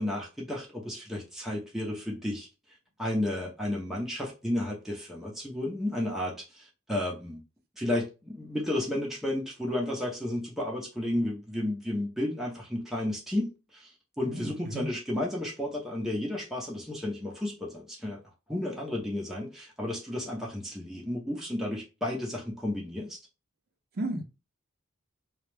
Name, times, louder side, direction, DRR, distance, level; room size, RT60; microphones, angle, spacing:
voice 1, 0.0-2.5 3.0-7.4 7.8-18.2 18.5-23.2, left 1 dB, ahead, 0.6 m, -32 dB
voice 2, 14.2-14.9 24.0-24.2, right 1 dB, 50° right, 0.5 m, -34 dB
2.3 x 2.0 x 3.1 m
head